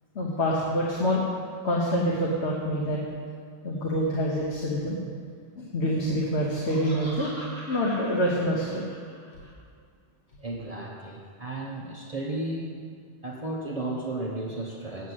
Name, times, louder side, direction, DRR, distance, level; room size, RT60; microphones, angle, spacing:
voice 1, 0.1-1.2 1.6-3.0 3.6-5.0 5.6-8.8, equal, 75° left, -3 dB, 1.4 m, -26 dB
Laughter, 6.2-9.5, equal, 25° left, 3.5 m, -43 dB
voice 2, 10.4-12.7 13.2-15.1, right 2 dB, 35° right, -2 dB, 1.1 m, -34 dB
8.1 x 7.4 x 8.0 m, 2.1 s
omnidirectional pair, 1.1 m